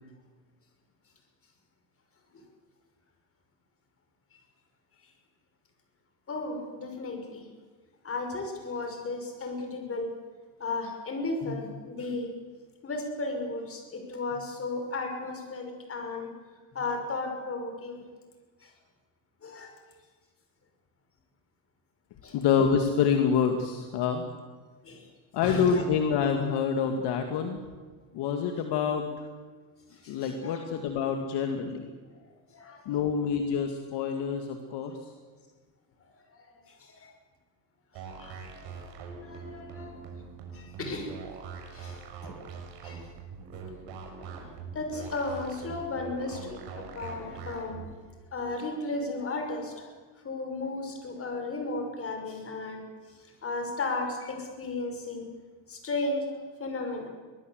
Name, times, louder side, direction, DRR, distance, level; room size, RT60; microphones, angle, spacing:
voice 1, 6.3-7.4 8.0-10.1 10.6-12.3 12.8-16.3 16.7-18.0 18.6-18.7 19.4-19.7 22.2-22.4 24.8-25.1 25.4-25.9 30.0-30.6 32.5-32.8 36.8-37.1 38.2-40.0 40.5-41.1 41.3-42.0 42.8-43.0 44.4-44.5 44.7-47.8 48.3-49.9 50.2-52.8 53.4-55.3 55.7-56.3 56.6-57.1, left 2 dB, 30° left, 4 dB, 5.8 m, -34 dB
voice 2, 22.3-24.3 25.3-27.6 28.1-29.0 30.1-31.9 32.9-35.0, left 7 dB, 60° left, 5 dB, 2.4 m, -27 dB
sound 1, 37.9-47.9, right 5 dB, 65° right, 6.6 m, -43 dB
24.0 x 19.5 x 8.0 m, 1.4 s
cardioid pair, 135°, 47 cm